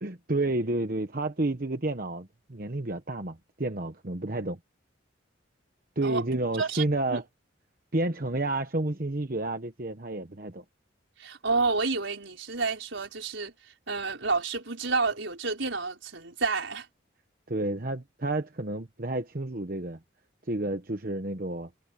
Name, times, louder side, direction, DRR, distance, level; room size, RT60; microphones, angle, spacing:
voice 1, 0.0-4.6 6.0-7.2 7.9-10.6 17.5-20.0 20.5-21.7, right 2 dB, 45° right, 1.1 m, -30 dB
voice 2, 11.2-13.5 13.9-16.9, right 4 dB, 80° right, 4.7 m, -29 dB
head